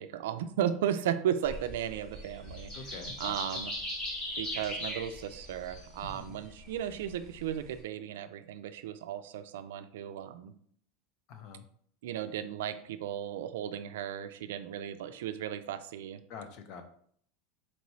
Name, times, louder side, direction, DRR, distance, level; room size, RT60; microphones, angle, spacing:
voice 1, 0.0-3.7 4.4-10.5 12.0-16.2, right 10 dB, 85° right, 11 dB, 0.3 m, -35 dB
sound 1, 1.4-7.8, left 1 dB, 25° left, 1.4 m, -40 dB
voice 2, 2.7-3.6 6.0-6.4 11.3-11.7 16.3-16.8, left 5 dB, 45° left, 7 dB, 0.5 m, -46 dB
4.3 x 3.0 x 2.7 m, 0.62 s
supercardioid pair, 155°, 0 cm